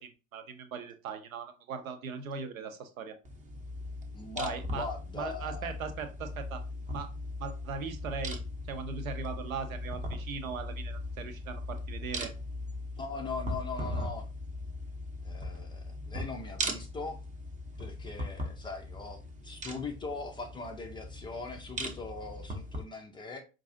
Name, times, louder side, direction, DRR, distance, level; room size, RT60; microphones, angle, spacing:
voice 1, 0.0-3.2 4.4-4.9 5.1-6.6 6.9-7.1 7.4-8.4 8.7-12.3, right 5 dB, 75° right, 8 dB, 0.8 m, -39 dB
sound 1, 3.3-22.8, left 1 dB, 20° right, 0.7 m, -39 dB
voice 2, 4.1-5.8 13.0-14.3 15.2-17.2 17.8-23.4, left 4 dB, 10° left, 2 dB, 0.4 m, -40 dB
4.6 x 2.5 x 2.6 m, 0.32 s
figure-of-eight pair, 80°, 42 cm